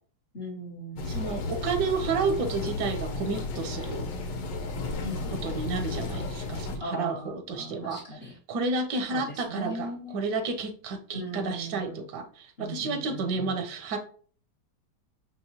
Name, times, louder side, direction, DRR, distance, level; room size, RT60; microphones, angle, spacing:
voice 1, 0.3-1.2 5.0-5.5 6.8-8.4 9.1-10.2 11.1-12.1 12.6-13.6, equal, 60° left, 0 dB, 0.7 m, -39 dB
sound 1, 1.0-6.8, left 3 dB, 90° left, 1.4 m, -33 dB
voice 2, 1.1-4.0 5.4-8.0 8.5-14.0, right 4 dB, 80° right, 7 dB, 1.3 m, -31 dB
4.7 x 3.0 x 2.8 m, 0.43 s
omnidirectional pair, 1.8 m